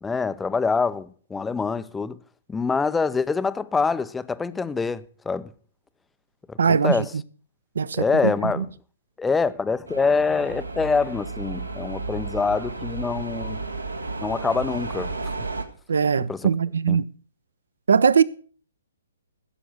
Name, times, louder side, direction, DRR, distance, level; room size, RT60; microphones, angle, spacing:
voice 1, 0.0-2.2 2.5-5.5 6.5-7.1 7.9-8.7 9.2-13.6 14.2-15.2 16.2-16.5 16.9-17.0, left 4 dB, 10° left, 0.5 m, -25 dB
voice 2, 6.6-7.1 7.8-8.6 15.9-17.1 17.9-18.2, right 6 dB, 60° right, 0.6 m, -21 dB
sound 1, 9.9-15.6, right 3 dB, 80° right, 1.6 m, -33 dB
15.0 x 7.0 x 6.1 m
figure-of-eight pair, 125°, 0 cm